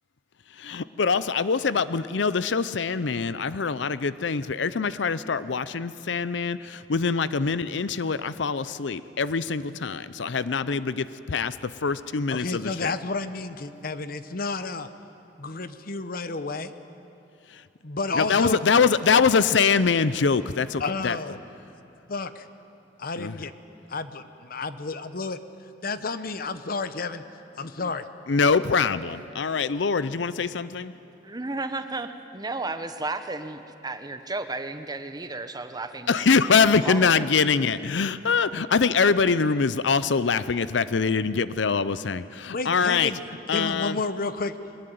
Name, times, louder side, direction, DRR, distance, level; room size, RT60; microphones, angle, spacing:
voice 1, 0.6-11.6 11.8-12.9 18.1-21.2 23.2-23.4 28.3-30.9 36.1-43.1 43.5-44.0, left 5 dB, 75° left, 15 dB, 0.6 m, -24 dB
voice 2, 12.3-14.9 15.4-16.7 17.8-18.6 20.8-21.4 22.1-22.3 23.0-23.5 23.9-25.4 25.8-27.2 27.6-28.0 42.5-43.2 43.5-44.5, left 3 dB, 55° left, 12 dB, 0.9 m, -31 dB
voice 3, 31.2-36.3 36.8-37.3, right 3 dB, 20° right, 9 dB, 1.0 m, -33 dB
22.0 x 20.5 x 9.3 m, 2.9 s
head